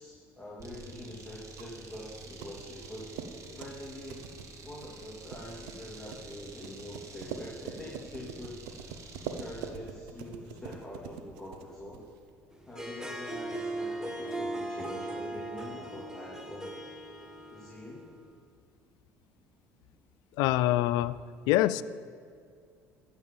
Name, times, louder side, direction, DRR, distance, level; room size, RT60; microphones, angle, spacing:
voice 1, 0.0-3.1 3.5-4.3 4.6-8.6 9.2-12.0 12.7-16.7 17.5-18.1, left 1 dB, 5° left, -6 dB, 2.6 m, -44 dB
sound 1, 0.6-9.8, right 3 dB, 45° right, 1.5 m, -49 dB
sound 2, 1.3-12.3, right 7 dB, 80° right, 0.8 m, -45 dB
Harp, 12.6-18.1, right 2 dB, 10° right, 1.5 m, -38 dB
voice 2, 20.4-21.2 21.5-21.8, left 15 dB, 75° left, 17 dB, 0.4 m, -25 dB
13.5 x 5.4 x 7.2 m, 2.2 s
supercardioid pair, 80°, 7 cm